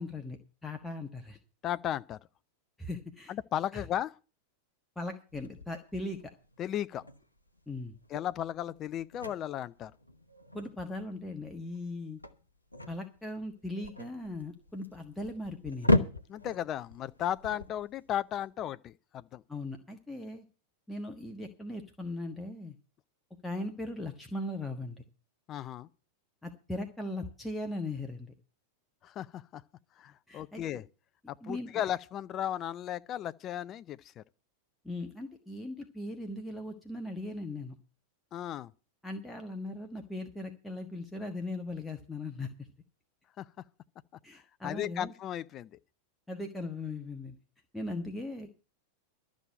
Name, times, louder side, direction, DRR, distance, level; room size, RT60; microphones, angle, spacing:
voice 1, 0.0-1.4 2.8-3.3 3.7-3.9 4.9-6.3 7.7-7.9 10.5-12.2 12.9-16.0 19.5-20.4 20.9-22.7 23.4-25.0 26.4-28.3 30.3-30.8 31.4-31.7 34.8-37.8 39.0-42.7 44.2-45.1 46.3-47.4 47.7-48.5, left 2 dB, 5° left, 1.4 m, -39 dB
voice 2, 1.6-2.2 3.3-4.2 6.6-7.0 8.1-9.9 16.3-19.4 25.5-25.9 29.0-29.6 30.0-30.8 31.3-34.2 38.3-38.7 43.4-43.5 44.6-45.8, left 11 dB, 30° left, 0.5 m, -35 dB
sound 1, 5.3-18.4, left 1 dB, 85° left, 0.9 m, -36 dB
13.0 x 6.3 x 8.8 m
figure-of-eight pair, 90°, 0 cm